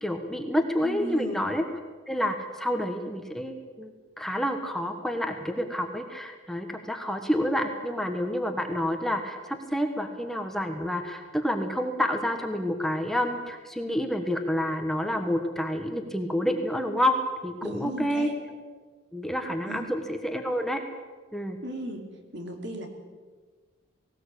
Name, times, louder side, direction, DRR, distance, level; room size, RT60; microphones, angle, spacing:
voice 1, 0.0-1.6 2.1-17.2 17.4-18.3 19.1-20.8 21.3-21.6, equal, ahead, 5 dB, 1.3 m, -28 dB
voice 2, 0.8-1.5 17.6-18.4 19.7-19.9 21.6-22.0 22.3-22.9, right 1 dB, 60° right, 4 dB, 3.1 m, -36 dB
18.5 x 18.5 x 8.4 m, 1.4 s
head